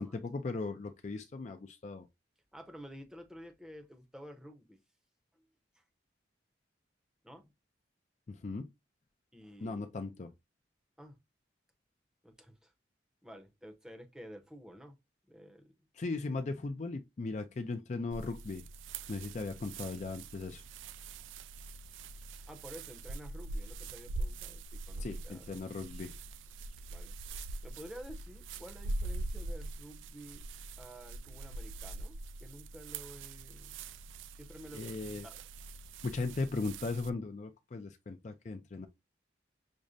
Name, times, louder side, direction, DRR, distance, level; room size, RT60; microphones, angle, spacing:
voice 1, 0.0-2.1 8.3-8.7 9.6-10.3 16.0-18.6 19.1-20.6 25.0-26.1 34.7-35.3 36.0-38.9, left 3 dB, 40° left, 0.4 m, -38 dB
voice 2, 2.5-4.8 5.3-5.4 5.7-5.8 7.2-7.5 9.3-9.8 11.0-11.2 12.2-12.7 13.2-15.0 15.3-15.7 22.5-25.6 26.9-27.2 27.6-30.5 30.8-33.8 34.4-35.4, equal, 5° right, 0.7 m, -51 dB
sound 1, 18.1-37.1, right 2 dB, 90° right, 0.3 m, -43 dB
6.2 x 2.1 x 2.6 m
head